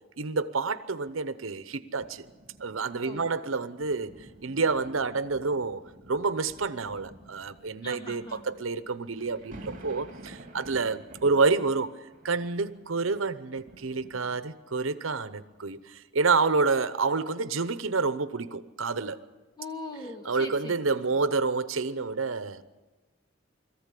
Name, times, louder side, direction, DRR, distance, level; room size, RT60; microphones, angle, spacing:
voice 1, 0.2-2.2 2.6-4.1 4.4-11.9 12.2-19.2 20.2-22.6, right 4 dB, 90° right, 0.9 m, -28 dB
sound 1, 2.0-14.7 15.4-15.6, right 1 dB, 45° right, 2.9 m, -51 dB
voice 2, 7.8-8.4 19.6-20.8, left 1 dB, 20° left, 2.2 m, -40 dB
22.0 x 14.5 x 8.4 m
head